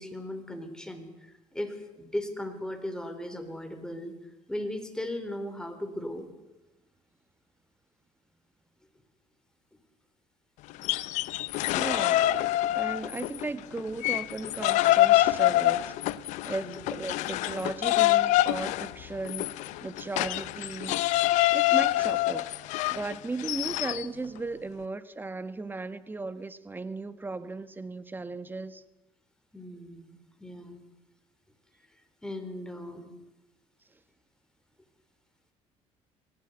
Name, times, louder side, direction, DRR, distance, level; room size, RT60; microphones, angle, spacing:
voice 1, 0.0-4.2 4.5-6.3 11.4-11.5 16.6-16.8 17.1-17.2 29.5-30.8 32.2-33.1, left 1 dB, 5° left, 7 dB, 4.0 m, -37 dB
sound 1, 10.7-13.5 13.8-24.1, left 16 dB, 80° left, 0.8 m, -26 dB
voice 2, 11.7-12.2 12.7-15.9 16.5-19.5 19.8-21.0 21.5-22.5 22.9-28.8, right 3 dB, 15° right, 12 dB, 1.4 m, -36 dB
25.0 x 18.0 x 8.1 m, 0.98 s
cardioid pair, 105°, 12 cm